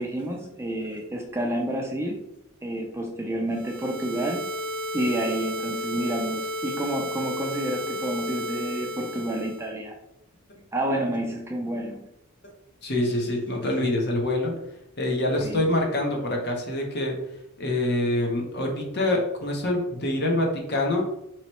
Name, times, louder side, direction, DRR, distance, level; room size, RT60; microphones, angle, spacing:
voice 1, 0.0-2.2 2.6-4.5 4.9-9.9 10.7-12.0 15.4-15.7, right 1 dB, 10° right, 0 dB, 0.4 m, -29 dB
sound 1, 3.5-9.7, equal, 70° right, 0.4 m, -33 dB
voice 2, 12.8-14.5 15.0-17.2 17.6-21.0, left 1 dB, 50° left, 1 dB, 0.9 m, -25 dB
3.1 x 3.0 x 4.2 m, 0.84 s
head